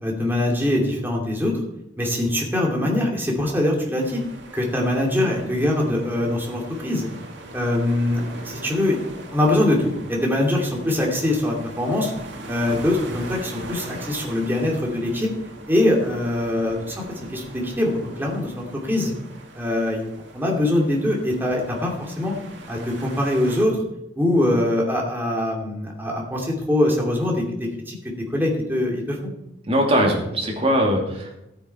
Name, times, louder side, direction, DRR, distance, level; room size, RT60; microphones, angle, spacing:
voice 1, 0.0-1.6 2.0-4.2 4.5-7.1 7.5-9.0 9.3-12.1 12.5-15.3 15.7-17.0 17.3-19.1 19.5-22.3 22.7-23.8 24.2-28.0 28.3-29.3, left 1 dB, 10° right, -1 dB, 2.5 m, -23 dB
sound 1, 4.0-23.6, right 1 dB, 90° right, 1.8 m, -40 dB
voice 2, 29.7-31.4, equal, 35° right, 0 dB, 2.6 m, -21 dB
14.0 x 8.9 x 4.6 m, 0.86 s
head